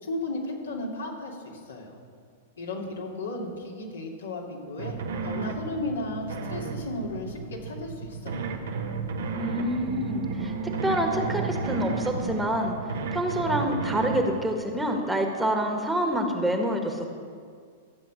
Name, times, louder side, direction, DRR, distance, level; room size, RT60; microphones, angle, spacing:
voice 1, 0.0-1.9 2.6-8.5, left 2 dB, 75° left, -2 dB, 2.8 m, -34 dB
sound 1, 4.8-14.2, right 4 dB, 65° right, 1.5 m, -32 dB
voice 2, 9.4-10.5 10.8-12.7 13.1-17.1, right 1 dB, 5° right, 2 dB, 1.7 m, -27 dB
14.0 x 7.5 x 8.4 m, 2.1 s
figure-of-eight pair, 100°, 0 cm